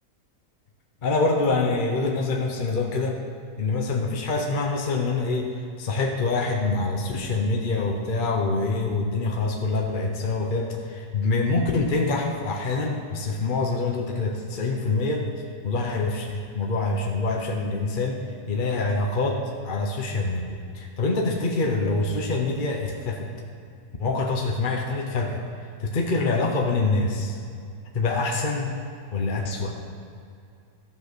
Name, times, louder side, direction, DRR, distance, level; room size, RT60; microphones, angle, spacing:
voice 1, 1.0-3.2 3.6-15.3 15.6-23.3 24.0-25.4 25.8-27.4 27.9-28.7 29.1-29.8, left 3 dB, 40° left, 1 dB, 0.9 m, -25 dB
14.0 x 5.6 x 6.1 m, 2.4 s
omnidirectional pair, 1.6 m